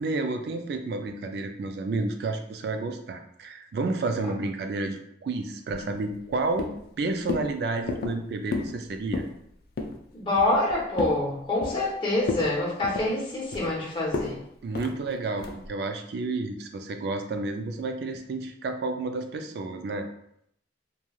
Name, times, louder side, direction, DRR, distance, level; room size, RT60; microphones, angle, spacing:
voice 1, 0.0-6.7 7.0-9.2 14.6-20.1, right 3 dB, 60° right, 6 dB, 0.3 m, -30 dB
sound 1, 5.7-6.3 6.6-6.9 7.3-7.5 7.9-8.2 8.5-8.8 9.0-9.4 9.8-10.0 10.4-11.2 11.6-12.0 12.2-12.5 12.8-13.7 14.1-14.3 14.7-15.0 15.4-15.7, left 3 dB, 55° left, 0.3 m, -32 dB
voice 2, 10.1-14.4, left 2 dB, 25° left, -5 dB, 0.8 m, -26 dB
3.0 x 2.2 x 2.3 m, 0.73 s
head